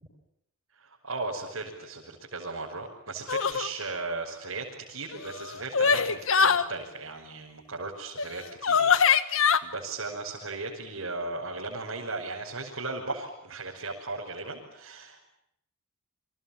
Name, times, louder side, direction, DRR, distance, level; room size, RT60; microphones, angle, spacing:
voice 1, 0.8-15.3, right 3 dB, 65° right, -3 dB, 5.8 m, -37 dB
sound 1, 3.3-3.7 5.1-6.7 8.2-8.3 8.6-9.6, left 6 dB, 65° left, 1.5 m, -23 dB
30.0 x 25.5 x 7.4 m, 0.76 s
head